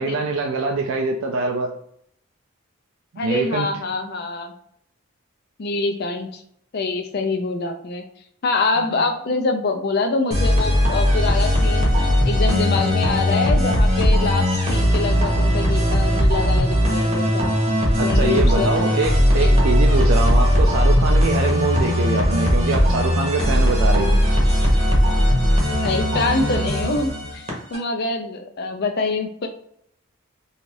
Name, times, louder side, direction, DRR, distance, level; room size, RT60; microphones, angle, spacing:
voice 1, 0.0-1.7 3.2-3.7 18.0-24.2, right 3 dB, 70° right, 2 dB, 0.3 m, -24 dB
voice 2, 3.2-4.5 5.6-6.4 6.7-8.0 8.4-11.9 12.3-17.6 18.0-18.7 19.3-19.7 25.7-29.5, left 3 dB, 50° left, 6 dB, 0.4 m, -25 dB
sound 1, 10.3-27.8, equal, 30° right, 0.7 m, -18 dB
2.6 x 2.4 x 3.2 m, 0.69 s
head